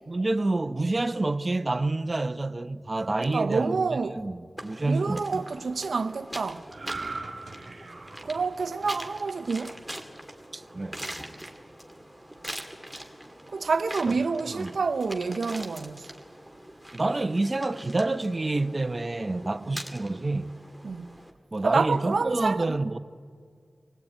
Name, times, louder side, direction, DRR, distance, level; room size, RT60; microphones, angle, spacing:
voice 1, 0.1-3.8 4.2-5.4 10.5-11.0 14.1-14.2 14.4-14.8 16.9-20.5 21.5-23.0, right 2 dB, 40° right, 0.7 m, -28 dB
voice 2, 3.3-4.2 4.9-6.6 8.2-9.7 13.5-16.1 20.8-21.1 21.6-22.7, right 4 dB, 85° right, 0.6 m, -28 dB
sound 1, 4.6-21.3, right 1 dB, 5° right, 2.5 m, -43 dB
sound 2, 6.7-10.2 10.6-10.8, right 3 dB, 65° right, 1.9 m, -40 dB
26.0 x 17.0 x 9.0 m
cardioid pair, 50°, 0 cm